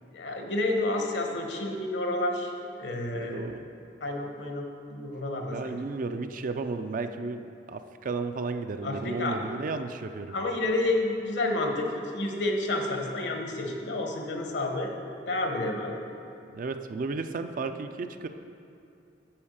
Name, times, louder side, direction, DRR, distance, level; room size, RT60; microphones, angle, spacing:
voice 1, 0.1-2.5 2.8-3.4 4.0-5.8 8.8-9.4 10.3-15.0 15.3-16.0, left 2 dB, 70° left, 2 dB, 1.1 m, -30 dB
voice 2, 3.0-3.6 5.5-10.4 16.5-18.3, right 3 dB, 50° right, 8 dB, 0.4 m, -33 dB
8.8 x 4.8 x 6.4 m, 2.6 s
head